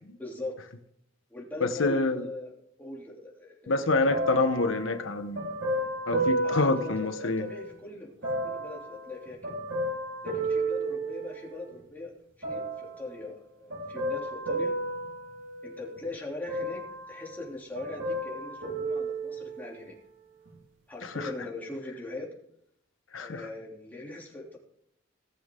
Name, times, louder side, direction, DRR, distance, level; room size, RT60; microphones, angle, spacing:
voice 1, 0.2-0.6 1.3-3.9 6.4-8.2 8.4-9.6 10.2-14.7 15.6-16.8 17.1-20.0 20.9-22.3 23.2-24.6, left 2 dB, 10° left, 3.1 m, -40 dB
voice 2, 1.6-2.2 3.7-5.5 6.1-7.4 21.0-21.3 23.1-23.4, left 3 dB, 80° left, 1.1 m, -27 dB
sound 1, 4.1-7.7 8.2-11.7 12.4-13.1 13.7-16.0 16.5-17.5 17.7-19.8 20.5-20.6, right 1 dB, 70° right, 4.2 m, -33 dB
18.5 x 7.6 x 3.8 m
head